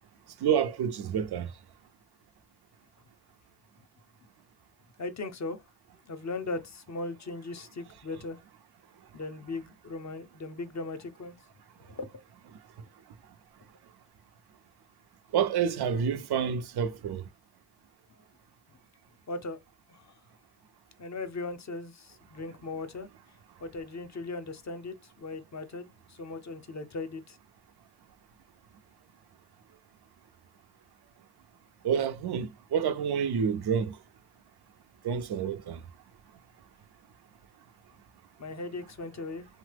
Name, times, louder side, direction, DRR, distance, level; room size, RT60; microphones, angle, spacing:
voice 1, 0.4-1.5 15.3-17.2 31.8-34.0 35.0-35.8, right 7 dB, 70° right, 0.5 m, -28 dB
voice 2, 5.0-5.6 6.0-8.4 9.1-11.4 11.9-12.1 19.3-19.6 19.9-20.2 21.0-23.1 23.6-27.4 38.4-39.5, left 3 dB, 40° left, 0.6 m, -38 dB
2.8 x 2.0 x 3.3 m
cardioid pair, 55°, 41 cm